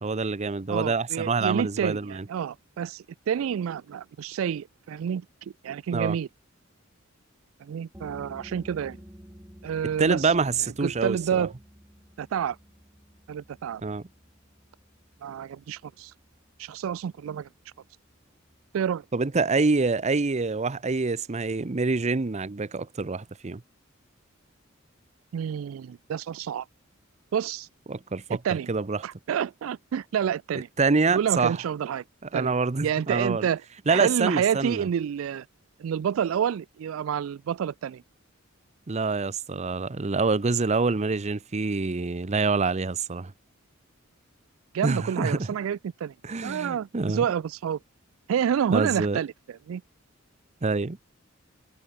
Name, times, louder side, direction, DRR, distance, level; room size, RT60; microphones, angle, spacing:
voice 1, 0.0-2.2 5.9-6.2 10.0-11.5 13.8-14.0 19.1-23.6 27.9-28.4 28.7-29.0 30.8-31.6 32.3-33.5 33.9-34.8 38.9-43.3 44.8-45.4 46.2-47.2 48.7-49.2 50.6-51.0, right 4 dB, 35° right, 0.7 m, -26 dB
voice 2, 0.7-6.3 7.6-9.0 9.6-10.3 10.8-11.5 12.2-12.6 13.3-13.8 15.2-16.1 16.6-17.5 18.7-19.0 25.3-26.7 27.3-27.7 28.4-28.7 29.0-30.7 31.1-32.0 32.3-32.5 32.8-33.6 33.9-35.5 35.8-38.0 44.7-46.1 46.4-47.8 48.3-49.8, right 8 dB, 85° right, 0.3 m, -29 dB
sound 1, 7.9-19.3, equal, 10° right, 5.7 m, -52 dB
head